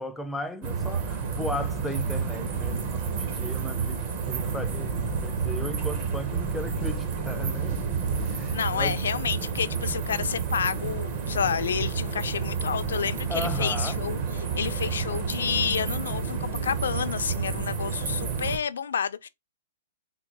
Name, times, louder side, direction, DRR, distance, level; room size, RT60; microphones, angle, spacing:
voice 1, 0.0-4.0 4.2-7.8 8.2-9.0 13.3-14.0, left 1 dB, ahead, 0.3 m, -36 dB
sound 1, 0.6-18.6, right 5 dB, 35° right, 0.6 m, -30 dB
voice 2, 8.5-14.2 14.5-19.3, left 7 dB, 90° left, 0.4 m, -29 dB
3.6 x 2.2 x 2.9 m
hypercardioid pair, 170°, 0 cm